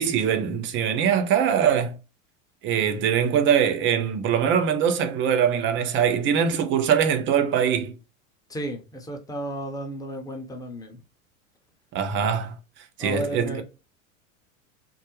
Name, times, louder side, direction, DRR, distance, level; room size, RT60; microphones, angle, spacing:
voice 1, 0.0-1.9 2.6-8.0 11.9-12.5 13.0-13.6, right 8 dB, 30° right, 0.5 m, -22 dB
voice 2, 8.5-11.0 13.0-13.6, right 1 dB, 10° left, 0.7 m, -33 dB
3.6 x 2.0 x 3.0 m
hypercardioid pair, 90°, 41 cm